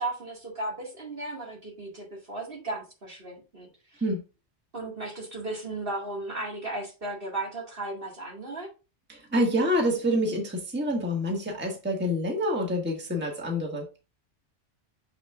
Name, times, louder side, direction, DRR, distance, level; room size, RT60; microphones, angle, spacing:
voice 1, 0.0-4.0 4.7-8.7, right 2 dB, 50° right, -1 dB, 2.2 m, -35 dB
voice 2, 9.1-13.9, equal, 10° right, 1 dB, 1.4 m, -27 dB
6.6 x 6.0 x 2.4 m, 0.30 s
omnidirectional pair, 1.3 m